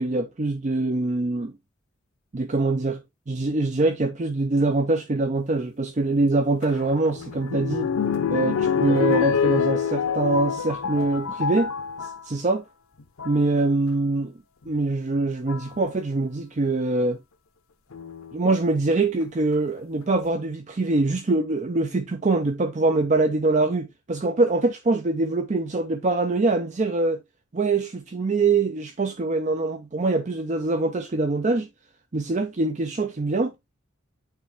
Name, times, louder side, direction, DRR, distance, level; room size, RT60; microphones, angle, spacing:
voice 1, 0.0-1.5 2.3-7.9 8.3-11.7 12.0-12.6 13.2-14.3 14.7-17.2 18.3-27.2 27.5-31.7 32.1-33.5, right 3 dB, 35° right, 0.5 m, -24 dB
sound 1, 6.6-12.3 13.0-13.4 14.7-14.8 15.5-15.8 17.9-18.5 19.2-19.3 19.5-19.6, left 7 dB, 85° left, 0.7 m, -26 dB
8.7 x 3.4 x 3.3 m
head